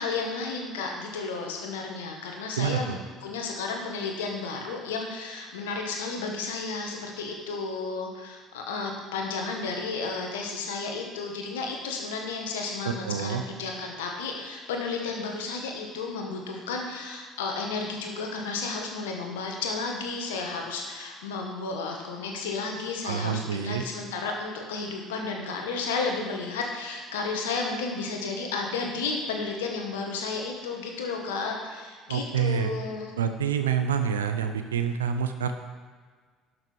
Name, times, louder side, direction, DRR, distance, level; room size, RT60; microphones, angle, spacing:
voice 1, 0.0-33.1, left 4 dB, 75° left, 2 dB, 1.6 m, -32 dB
voice 2, 2.6-3.0 12.9-13.4 23.0-23.8 32.1-32.7 33.2-35.5, right 7 dB, 80° right, 8 dB, 0.7 m, -27 dB
11.5 x 6.2 x 4.7 m, 1.5 s
hypercardioid pair, 60°, 0 cm